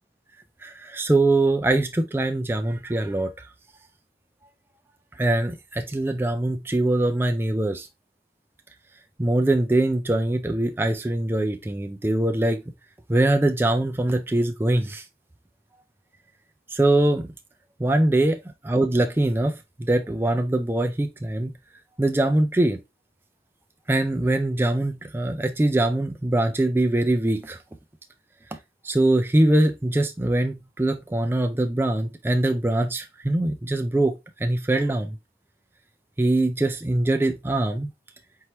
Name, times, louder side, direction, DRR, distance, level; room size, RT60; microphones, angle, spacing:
voice 1, 0.6-3.3 5.2-7.9 9.2-12.6 13.1-15.0 16.7-17.3 17.8-18.4 18.6-21.5 22.0-22.8 23.9-27.6 28.8-34.2 34.4-35.1 36.2-37.9, right 1 dB, 15° right, 0.3 m, -22 dB
4.5 x 3.1 x 2.9 m
head